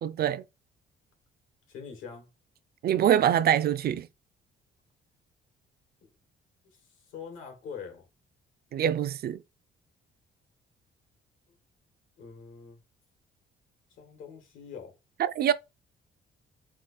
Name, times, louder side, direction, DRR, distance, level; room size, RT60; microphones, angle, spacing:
voice 1, 0.0-0.4 2.8-4.1 8.7-9.4 15.2-15.5, right 10 dB, 50° right, 0.4 m, -24 dB
voice 2, 1.7-2.3 6.0-6.1 7.1-8.0 12.2-12.8 14.0-14.9, left 6 dB, 90° left, 1.8 m, -43 dB
3.7 x 2.9 x 4.2 m
cardioid pair, 90°, 20 cm